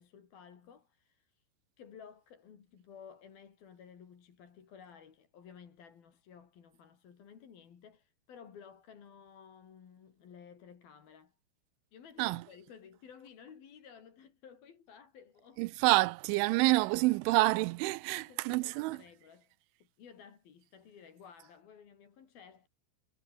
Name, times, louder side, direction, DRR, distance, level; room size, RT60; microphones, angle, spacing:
voice 1, 0.0-1.5 1.8-11.4 11.9-15.6 18.1-19.5 19.8-22.7, left 7 dB, 50° left, 4.7 m, -55 dB
voice 2, 15.6-19.0, right 22 dB, 80° right, 2.9 m, -28 dB
omnidirectional pair, 5.8 m